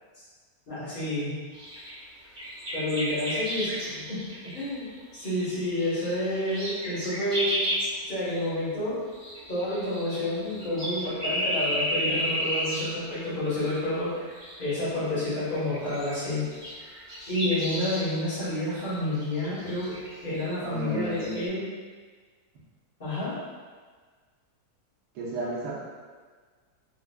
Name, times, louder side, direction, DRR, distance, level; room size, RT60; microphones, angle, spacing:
voice 1, 0.7-1.3 2.7-4.2 4.5-4.9 5.1-7.6 8.0-9.0 9.5-16.5 17.3-21.6 23.0-23.4, left 1 dB, 35° left, -12 dB, 1.2 m, -29 dB
sound 1, 1.5-8.0 8.2-8.4 8.8-13.2 13.6-14.0 14.3-20.5 21.0-21.4, equal, 15° right, 1.1 m, -33 dB
voice 2, 20.6-21.5 25.1-25.7, right 2 dB, 85° right, -5 dB, 1.4 m, -33 dB
4.7 x 2.4 x 2.2 m, 1.5 s
omnidirectional pair, 1.7 m